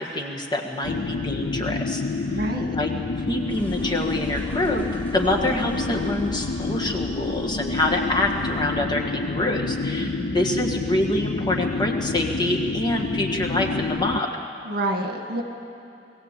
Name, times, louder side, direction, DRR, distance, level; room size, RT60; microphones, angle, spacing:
voice 1, 0.0-2.0 2.8-2.9 3.3-14.3, left 1 dB, 25° left, 0 dB, 1.6 m, -26 dB
sound 1, 0.8-14.2, left 3 dB, 55° left, 0.5 m, -28 dB
sound 2, 0.9-8.7, equal, 10° left, 3.1 m, -42 dB
voice 2, 2.2-2.8 10.0-10.4 14.6-15.4, right 1 dB, 60° right, 4 dB, 1.9 m, -28 dB
20.5 x 16.0 x 8.4 m, 2.6 s
head